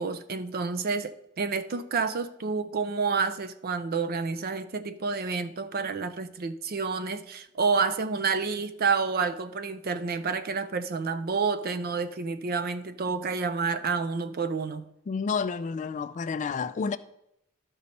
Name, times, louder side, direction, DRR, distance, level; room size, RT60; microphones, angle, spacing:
voice 1, 0.0-14.8, right 4 dB, 45° right, 0.5 m, -29 dB
voice 2, 15.1-17.0, left 5 dB, 35° left, 0.3 m, -30 dB
12.5 x 5.3 x 4.1 m
head